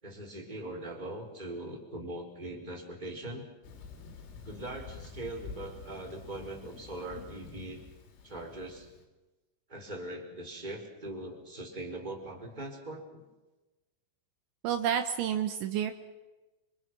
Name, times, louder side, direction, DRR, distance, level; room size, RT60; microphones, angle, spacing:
voice 1, 0.0-3.5 4.4-7.8 8.2-8.9 9.7-13.2, right 1 dB, 10° right, 1 dB, 4.3 m, -41 dB
Thunder, 3.6-9.0, left 5 dB, 85° left, 5.9 m, -48 dB
voice 2, 14.6-15.9, right 9 dB, 75° right, 7 dB, 3.5 m, -29 dB
29.0 x 26.0 x 6.2 m, 1.1 s
omnidirectional pair, 5.7 m